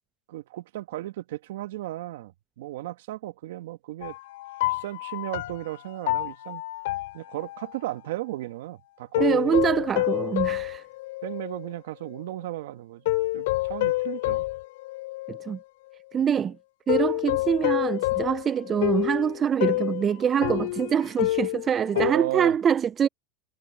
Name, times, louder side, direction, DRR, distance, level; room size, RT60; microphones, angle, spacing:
voice 1, 0.3-4.2 4.7-6.6 7.1-9.8 11.2-13.0 13.3-14.5 21.9-22.6, right 16 dB, 75° right, 1.5 m, -35 dB
sound 1, 4.0-7.8 9.1-11.7 12.1-12.2 13.1-15.5 16.9-22.1, left 19 dB, 75° left, 3.2 m, -28 dB
voice 2, 9.2-10.8 15.3-15.6 16.1-16.6 16.9-23.1, right 8 dB, 25° right, 0.3 m, -24 dB
supercardioid pair, 130°, 0 cm